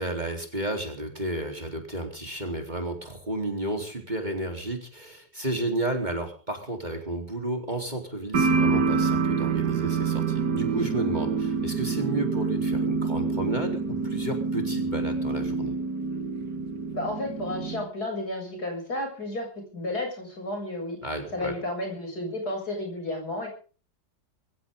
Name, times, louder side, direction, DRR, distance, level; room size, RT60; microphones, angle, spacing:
voice 1, 0.0-15.7 21.0-21.5, right 1 dB, 25° right, 3 dB, 3.9 m, -32 dB
sound 1, 8.3-17.8, right 5 dB, 70° right, 2.4 m, -27 dB
voice 2, 16.9-21.0 21.3-23.5, left 1 dB, 65° left, 2 dB, 8.1 m, -32 dB
23.5 x 16.0 x 3.8 m, 0.39 s
omnidirectional pair, 1.8 m